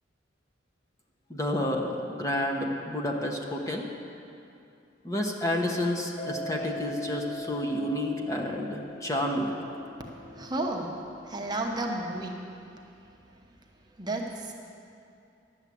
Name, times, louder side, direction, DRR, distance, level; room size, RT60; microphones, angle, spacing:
voice 1, 1.3-3.9 5.0-9.6, left 1 dB, 15° left, 0 dB, 1.0 m, -30 dB
Mallet percussion, 6.2-12.5, equal, 35° left, 1.6 m, -42 dB
voice 2, 10.3-10.9 11.2-12.3 14.0-14.5, right 2 dB, 20° right, 0 dB, 0.9 m, -32 dB
11.0 x 7.3 x 8.3 m, 2.6 s
head